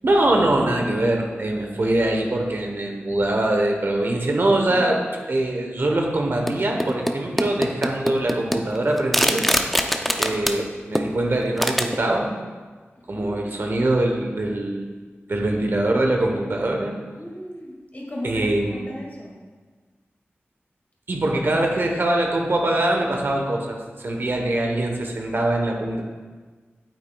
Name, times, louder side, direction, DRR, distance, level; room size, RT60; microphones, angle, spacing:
voice 1, 0.0-5.0 5.3-9.5 10.2-12.3 13.1-14.9 15.3-16.9 18.2-18.8 21.1-26.0, right 1 dB, 55° right, 1 dB, 1.0 m, -23 dB
voice 2, 4.7-5.0 10.0-10.4 13.0-13.4 17.2-19.4, left 1 dB, 40° left, -3 dB, 2.1 m, -36 dB
sound 1, 6.5-7.1 7.4-10.6 10.9-11.1 11.4-12.0, equal, 5° left, 0.5 m, -22 dB
8.7 x 8.6 x 2.3 m, 1.4 s
wide cardioid pair, 90°, 4 cm